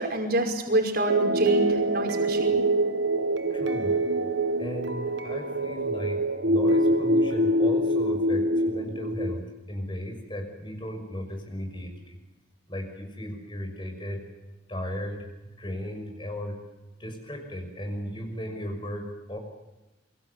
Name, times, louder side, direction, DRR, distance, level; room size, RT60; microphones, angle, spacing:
voice 1, 0.0-2.6, right 1 dB, 55° right, 3 dB, 5.4 m, -27 dB
sound 1, 1.1-9.4, right 1 dB, 70° right, 1.9 m, -25 dB
voice 2, 3.5-4.0 4.6-9.4 9.7-12.2 12.7-14.2 14.7-15.2 15.6-16.6 17.0-19.4, equal, 25° left, 5 dB, 5.9 m, -36 dB
27.0 x 24.0 x 8.3 m, 1.0 s
head